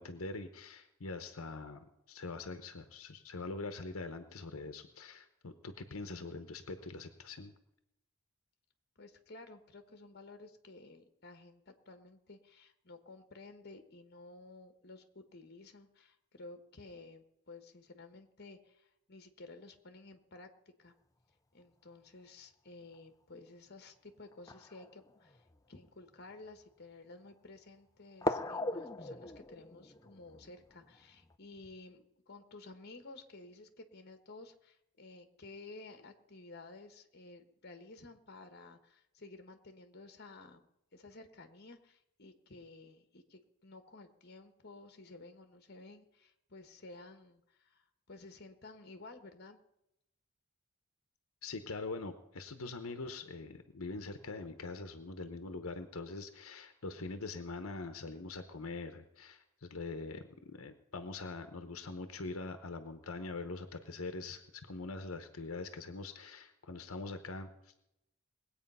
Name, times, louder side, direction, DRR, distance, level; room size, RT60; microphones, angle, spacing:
voice 1, 0.0-7.5 51.4-67.9, left 3 dB, 75° left, 8 dB, 1.0 m, -43 dB
voice 2, 9.0-20.5 20.8-20.9 21.5-49.6, left 2 dB, 50° left, 8 dB, 1.4 m, -53 dB
sound 1, 22.9-23.0 24.3-25.6 26.3-26.4 28.2-31.4, left 2 dB, 15° left, 0.5 m, -40 dB
20.5 x 8.5 x 5.5 m, 0.83 s
head